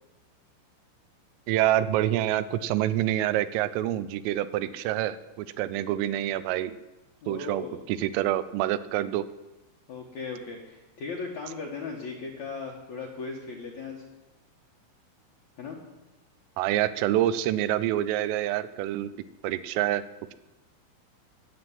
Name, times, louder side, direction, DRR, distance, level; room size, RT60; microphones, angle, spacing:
voice 1, 1.5-6.8 7.3-7.6 7.9-9.3 16.6-19.1 19.4-20.0, right 13 dB, 80° right, 13 dB, 3.2 m, -27 dB
voice 2, 7.2-7.8 9.9-14.0 15.6-15.8, left 4 dB, 85° left, -2 dB, 1.6 m, -37 dB
21.5 x 8.2 x 7.5 m, 1.1 s
omnidirectional pair, 6.0 m